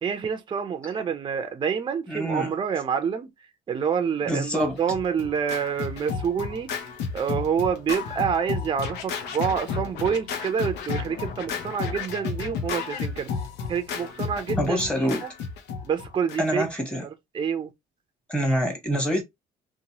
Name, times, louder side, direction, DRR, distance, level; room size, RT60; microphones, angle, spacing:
voice 1, 0.0-3.3 3.7-6.7 7.1-13.3 13.7-15.3 15.8-16.6 17.0-17.7, right 7 dB, 30° right, 0.5 m, -27 dB
voice 2, 2.1-2.5 4.3-4.8 14.6-15.2 16.4-17.1 18.3-19.2, equal, 5° left, 1.1 m, -25 dB
Scratching (performance technique), 4.6-16.7, left 5 dB, 80° left, 0.7 m, -32 dB
2.9 x 2.2 x 2.8 m
cardioid pair, 110°, 17 cm